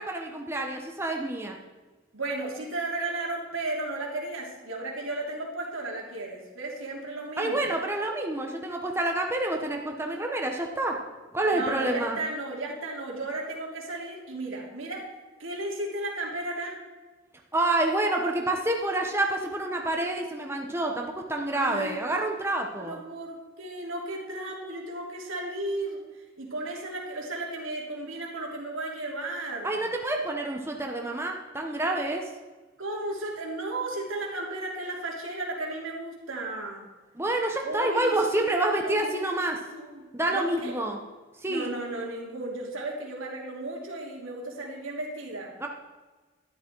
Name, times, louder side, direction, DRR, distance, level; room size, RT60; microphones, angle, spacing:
voice 1, 0.0-1.6 7.4-11.0 11.3-12.2 17.5-23.0 29.6-32.2 37.1-39.6 40.1-41.0 41.4-41.7 45.6-45.7, right 2 dB, 10° right, 2 dB, 1.0 m, -28 dB
voice 2, 2.1-7.7 11.5-15.1 15.4-16.8 21.5-22.0 22.8-29.8 32.8-36.8 37.6-40.7 41.5-45.5, right 2 dB, 85° right, -1 dB, 3.0 m, -34 dB
12.5 x 11.5 x 4.6 m, 1.3 s
head